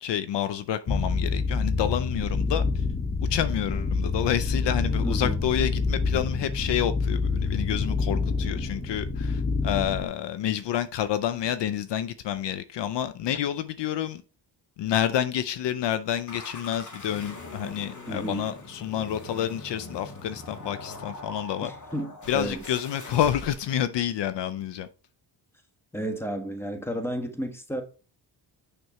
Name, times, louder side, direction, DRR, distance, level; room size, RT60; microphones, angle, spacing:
voice 1, 0.0-2.6 3.3-14.2 14.8-21.7 22.3-24.9, left 10 dB, 70° left, 0.6 m, -29 dB
sound 1, 0.9-10.1, left 4 dB, 20° left, 0.9 m, -27 dB
voice 2, 5.0-5.4 18.1-18.5 21.6-22.6 25.9-27.8, equal, 5° left, 1.3 m, -32 dB
sound 2, 16.3-23.8, left 2 dB, 40° left, 1.8 m, -42 dB
6.4 x 6.0 x 3.1 m
cardioid pair, 75°, 45 cm